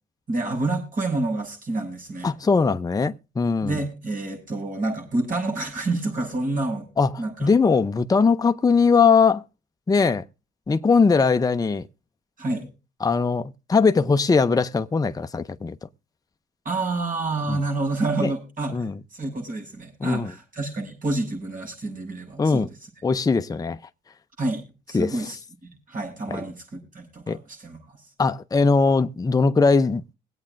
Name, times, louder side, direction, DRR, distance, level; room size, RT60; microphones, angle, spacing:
voice 1, 0.3-2.3 3.6-6.9 7.2-7.5 12.4-12.7 16.6-22.7 24.4-25.4 25.9-28.0, right 2 dB, 45° right, 6.7 m, -28 dB
voice 2, 2.2-3.7 7.0-9.4 9.9-10.2 10.7-11.9 13.0-15.8 17.5-17.6 18.2-18.3 18.7-19.0 20.0-20.3 22.4-22.7 23.0-23.8 24.9-25.2 26.3-26.4 27.3-27.4 28.2-30.0, left 4 dB, 20° left, 0.6 m, -20 dB
23.5 x 8.5 x 2.6 m
cardioid pair, 90°, 20 cm